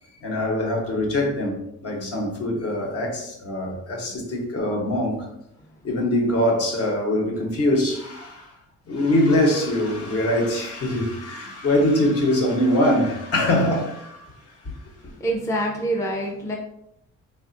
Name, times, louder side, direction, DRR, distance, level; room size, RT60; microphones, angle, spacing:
voice 1, 0.2-5.3 5.8-8.5 8.9-14.7, left 1 dB, 50° left, 0.9 m, -23 dB
voice 2, 15.0-16.6, right 1 dB, 10° left, 0.5 m, -26 dB
3.3 x 2.4 x 2.5 m
cardioid pair, 90°, 30 cm